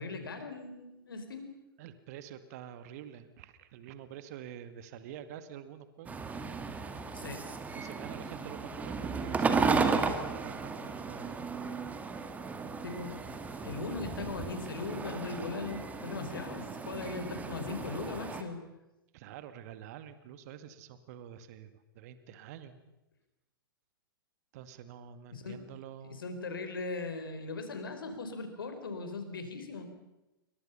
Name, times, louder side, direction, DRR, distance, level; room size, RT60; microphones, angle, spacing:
voice 1, 0.0-1.5 7.1-7.4 12.8-13.2 13.6-18.6 25.3-25.6 26.0-29.9, left 3 dB, 65° left, 7 dB, 4.7 m, -39 dB
voice 2, 1.8-6.2 7.7-11.4 19.1-22.8 24.5-26.3, right 10 dB, 45° right, 11 dB, 2.0 m, -47 dB
sound 1, 6.1-18.4, right 4 dB, 10° right, 2.1 m, -34 dB
28.0 x 24.5 x 5.7 m, 0.98 s
figure-of-eight pair, 105°, 12 cm